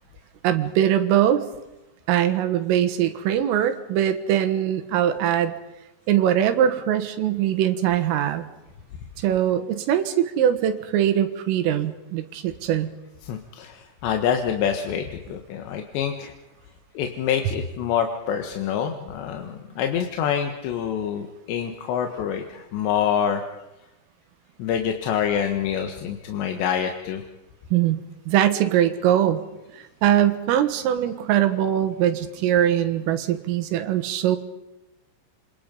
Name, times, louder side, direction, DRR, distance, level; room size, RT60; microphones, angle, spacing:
voice 1, 0.4-1.4 2.1-5.5 6.1-8.5 9.2-12.9 27.7-28.0 28.3-29.4 29.7-34.4, right 10 dB, 90° right, 9 dB, 4.1 m, -22 dB
voice 2, 13.2-16.3 17.0-23.4 24.6-27.2, left 8 dB, 70° left, 4 dB, 3.4 m, -26 dB
28.0 x 25.5 x 5.4 m, 0.98 s
omnidirectional pair, 5.7 m